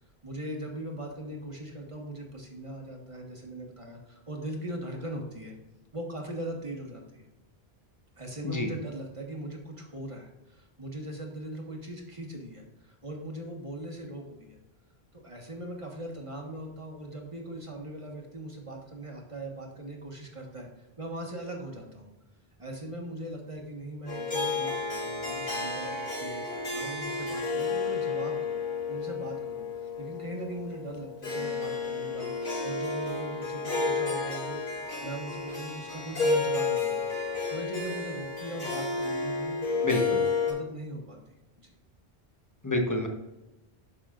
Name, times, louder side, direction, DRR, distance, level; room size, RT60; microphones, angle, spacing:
voice 1, 0.2-5.5 5.9-7.3 8.2-14.6 15.1-22.1 22.6-28.5 28.9-37.1 37.5-41.7, right 1 dB, 30° right, 0 dB, 1.6 m, -40 dB
Harp, 24.1-40.5, left 4 dB, 50° left, 2.5 m, -31 dB
voice 2, 39.8-40.2 42.6-43.1, left 2 dB, 15° left, 3 dB, 1.1 m, -27 dB
10.0 x 6.8 x 2.5 m, 1.0 s
omnidirectional pair, 1.1 m